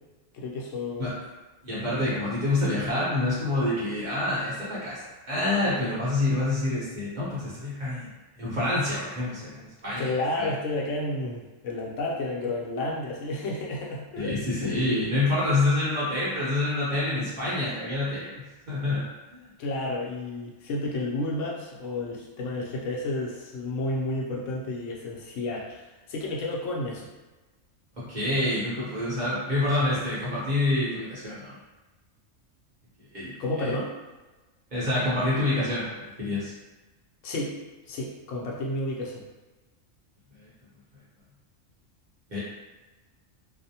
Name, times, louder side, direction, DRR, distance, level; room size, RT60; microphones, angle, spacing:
voice 1, 0.3-1.1 10.0-14.3 14.6-15.0 19.6-27.1 33.4-33.9 37.2-37.5 37.9-39.2, left 2 dB, 75° left, -3 dB, 0.9 m, -31 dB
voice 2, 1.6-8.1 8.4-10.5 14.2-18.3 18.7-19.0 19.3-19.4 28.0-31.6 33.1-33.7 34.7-36.5 40.4-40.5 42.3-42.4, left 2 dB, 45° right, -9 dB, 0.8 m, -27 dB
2.5 x 2.0 x 2.7 m, 1.2 s
omnidirectional pair, 1.3 m